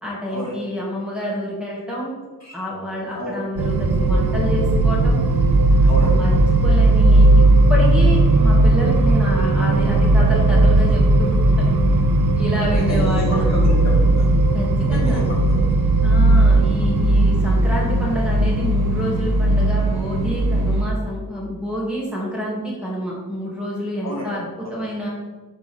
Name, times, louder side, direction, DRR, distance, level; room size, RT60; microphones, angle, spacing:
voice 1, 0.0-2.1 2.5-5.2 5.8-6.3 6.6-7.4 7.7-11.8 12.4-13.5 14.5-15.2 16.0-25.1, equal, ahead, -6 dB, 2.4 m, -28 dB
sound 1, 3.6-20.8, right 2 dB, 70° right, 0.9 m, -16 dB
voice 2, 12.7-14.3 14.9-15.6 24.0-24.3 24.6-24.7, left 1 dB, 45° left, -4 dB, 1.9 m, -29 dB
12.0 x 4.0 x 3.5 m, 1.3 s
wide cardioid pair, 100°, 38 cm